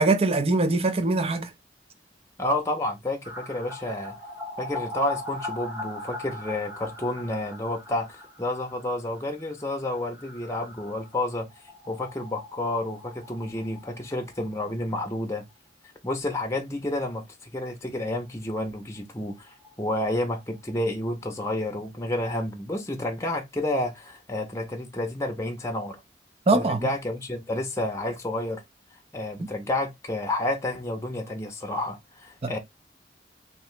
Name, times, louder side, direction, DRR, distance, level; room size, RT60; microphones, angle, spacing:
voice 1, 0.0-1.5 26.5-26.9 32.4-32.6, right 3 dB, 35° right, 0.5 m, -22 dB
voice 2, 2.4-4.2 4.6-11.5 11.9-15.4 16.0-26.0 26.5-28.6 29.1-32.6, left 1 dB, 15° left, 0.7 m, -30 dB
sound 1, 3.2-14.8 15.1-15.2 15.5-15.6 18.6-18.7 19.0-19.1 19.3-21.1 21.4-21.5, left 2 dB, 15° right, 0.9 m, -41 dB
2.9 x 2.9 x 3.2 m
head